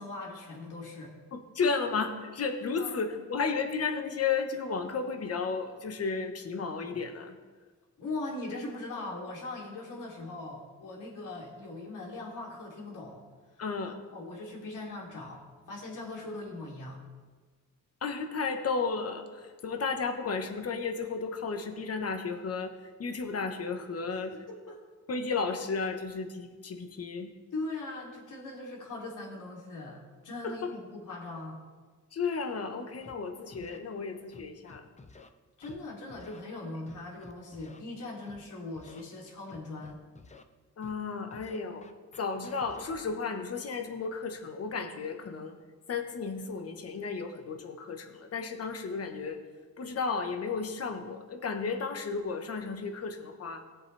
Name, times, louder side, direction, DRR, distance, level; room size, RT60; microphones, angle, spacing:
voice 1, 0.0-1.1 2.8-3.0 8.0-13.2 14.1-17.0 24.3-24.8 27.5-31.6 35.6-40.0, left 2 dB, 70° left, -3 dB, 3.3 m, -40 dB
voice 2, 1.3-7.3 13.6-14.0 18.0-24.4 25.1-27.3 30.4-30.7 32.1-34.9 40.8-41.9 42.2-45.5 45.9-49.4 49.8-53.6, left 4 dB, 50° left, 5 dB, 1.4 m, -33 dB
Scratching (performance technique), 33.0-33.1 33.5-33.8 34.3-35.3 35.6-35.8 36.1-36.4 36.9-37.8 38.2-38.4 38.8-39.0 39.5-40.4 40.8-41.0 41.3-43.1, left 4 dB, 20° left, 0.7 m, -52 dB
18.5 x 7.7 x 3.4 m, 1.4 s
cardioid pair, 110°, 32 cm